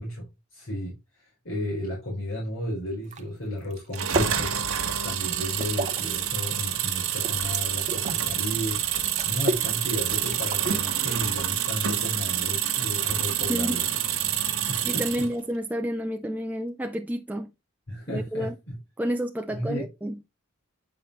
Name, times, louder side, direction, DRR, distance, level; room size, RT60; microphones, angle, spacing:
voice 1, 0.0-4.5 5.0-13.8 14.7-15.2 17.9-18.8 19.5-19.9, equal, 65° left, 4.3 m, -34 dB
sound 1, 3.0-3.2 3.6-4.6 5.0-6.1 6.5-8.3 8.7-8.8 9.0-9.7 10.0-10.1 10.3-11.4 11.8-12.3 13.2-13.7, right 3 dB, 30° right, 0.8 m, -33 dB
sound 2, 3.9-15.3, right 10 dB, 75° right, 1.3 m, -27 dB
voice 2, 14.8-17.5 18.1-18.6 19.0-20.2, equal, 5° right, 0.3 m, -30 dB
8.4 x 5.6 x 3.0 m
head